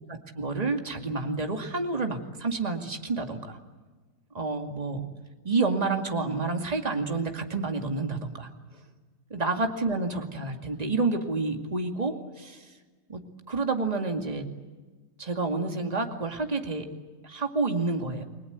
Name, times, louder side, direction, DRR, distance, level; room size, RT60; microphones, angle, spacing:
voice 1, 0.1-3.6 4.3-5.1 5.4-8.5 9.3-12.6 13.1-13.2 13.5-14.5 15.2-16.9 17.2-18.2, right 3 dB, 20° right, 4 dB, 2.3 m, -29 dB
30.0 x 21.5 x 8.2 m, 1.3 s
omnidirectional pair, 1.8 m